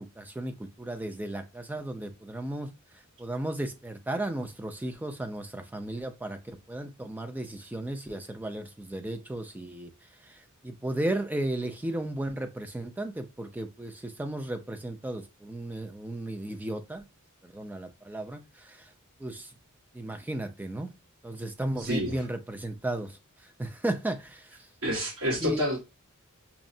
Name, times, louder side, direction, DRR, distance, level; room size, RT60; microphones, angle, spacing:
voice 1, 0.0-2.7 3.2-9.9 10.2-17.1 17.4-18.9 19.2-19.5 19.9-20.9 21.2-24.6 25.4-25.6, right 1 dB, 10° right, 0.4 m, -35 dB
voice 2, 21.8-22.1 24.8-25.8, equal, 65° right, 1.4 m, -29 dB
5.8 x 2.0 x 2.6 m
head